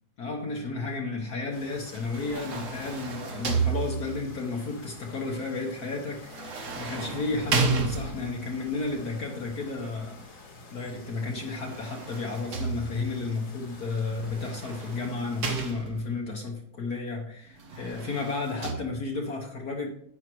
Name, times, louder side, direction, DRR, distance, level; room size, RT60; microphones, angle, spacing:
voice 1, 0.2-10.2 10.7-19.9, left 3 dB, 55° left, 1.5 m, -33 dB
sound 1, 1.5-15.7, left 2 dB, 80° left, 2.8 m, -49 dB
sound 2, 1.9-4.4 6.2-8.5 11.4-13.2 14.2-16.2 17.6-18.7, right 4 dB, 45° right, 1.3 m, -32 dB
11.0 x 8.6 x 3.1 m
omnidirectional pair, 2.1 m